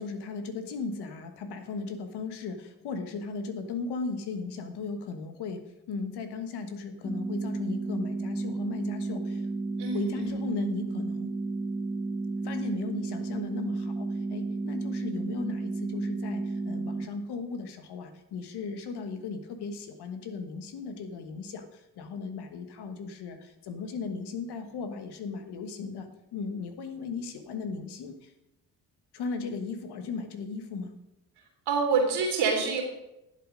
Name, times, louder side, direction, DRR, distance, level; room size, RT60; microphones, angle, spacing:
voice 1, 0.0-9.5 9.9-11.3 12.4-28.3 29.1-31.0, left 4 dB, 70° left, 7 dB, 1.4 m, -36 dB
sound 1, 7.0-17.1, right 3 dB, 5° right, 1.5 m, -32 dB
voice 2, 9.8-10.3 31.7-32.8, right 5 dB, 75° right, 0 dB, 3.3 m, -26 dB
11.0 x 7.7 x 5.2 m, 0.90 s
hypercardioid pair, 50°, 40 cm